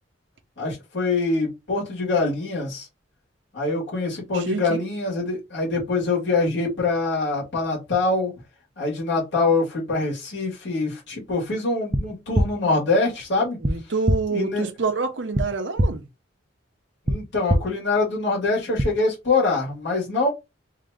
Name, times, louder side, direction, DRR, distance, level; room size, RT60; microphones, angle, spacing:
voice 1, 0.6-2.9 3.5-8.3 8.8-13.6 14.3-14.7 17.1-20.3, left 3 dB, 70° left, 2.2 m, -24 dB
voice 2, 4.3-4.9 13.6-16.0, right 4 dB, 70° right, 0.8 m, -27 dB
sound 1, 11.9-12.0 12.3-12.5 13.6-13.7 14.1-14.2 15.3-15.4 15.8-15.9 17.1-17.2 17.5-17.6 18.8-18.9, equal, 25° right, 0.6 m, -19 dB
3.7 x 2.9 x 3.5 m
head